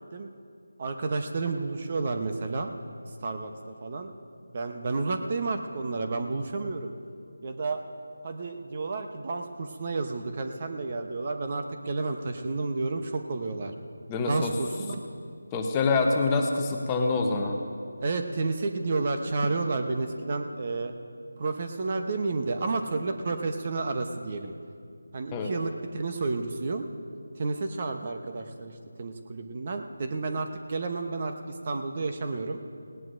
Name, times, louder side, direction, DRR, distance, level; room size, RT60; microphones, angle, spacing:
voice 1, 0.8-2.7 3.2-3.5 3.8-4.1 4.5-6.9 7.4-7.8 8.2-13.7 14.2-15.0 18.0-20.9 21.4-24.5 25.1-26.8 27.4-28.7 29.0-31.3 31.7-32.6, right 3 dB, 35° right, 5 dB, 0.8 m, -31 dB
voice 2, 14.1-14.5 15.5-17.6 25.3-25.5, left 3 dB, 15° left, 2 dB, 0.8 m, -25 dB
18.5 x 18.0 x 2.6 m, 2.3 s
figure-of-eight pair, 165°, 0 cm